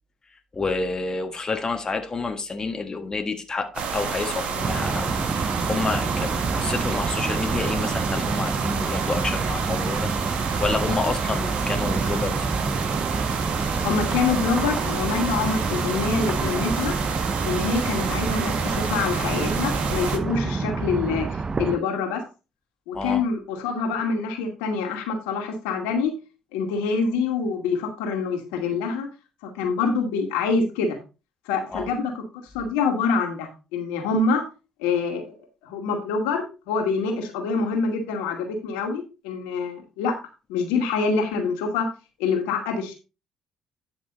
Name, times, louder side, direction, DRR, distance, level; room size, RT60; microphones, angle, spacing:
voice 1, 0.5-10.1 10.6-12.5 22.9-23.2 31.7-31.9, left 3 dB, 30° left, 1.6 m, -29 dB
sound 1, 3.7-20.2, right 6 dB, 55° right, 1.8 m, -29 dB
sound 2, 4.6-21.8, right 4 dB, 30° right, 0.8 m, -28 dB
voice 2, 13.8-17.0 17.4-22.2 22.9-26.1 26.5-29.1 29.4-31.0 31.5-32.2 32.5-34.4 34.8-35.4 35.6-40.2 40.5-41.9 42.2-42.9, left 4 dB, 75° left, 2.3 m, -26 dB
10.5 x 5.9 x 4.0 m
hypercardioid pair, 50°, 2 cm